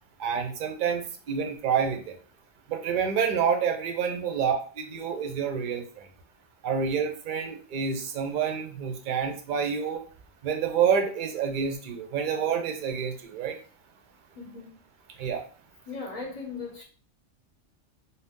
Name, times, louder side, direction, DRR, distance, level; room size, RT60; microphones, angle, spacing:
voice 1, 0.2-2.1 2.7-6.1 6.6-10.0 10.4-13.6 15.2-15.4, right 7 dB, 55° right, 5 dB, 0.6 m, -28 dB
voice 2, 14.3-14.8 15.9-16.8, left 4 dB, 35° left, -1 dB, 0.7 m, -38 dB
2.6 x 2.2 x 3.5 m, 0.40 s
omnidirectional pair, 1.2 m